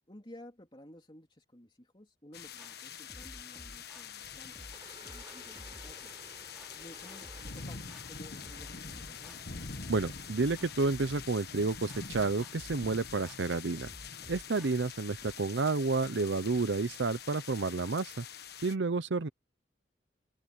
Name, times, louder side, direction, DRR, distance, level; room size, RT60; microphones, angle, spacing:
voice 1, 0.1-4.7 5.0-6.1 6.7-9.4, left 1 dB, 25° left, 3.4 m, -54 dB
sound 1, 2.3-18.8, left 6 dB, 55° left, 1.5 m, -45 dB
sound 2, 2.6-15.3, equal, ahead, 2.9 m, -54 dB
sound 3, 4.2-10.5, right 2 dB, 25° right, 7.4 m, -57 dB
voice 2, 9.9-13.9 14.3-18.2 18.6-19.3, right 3 dB, 70° right, 0.7 m, -30 dB
open air
head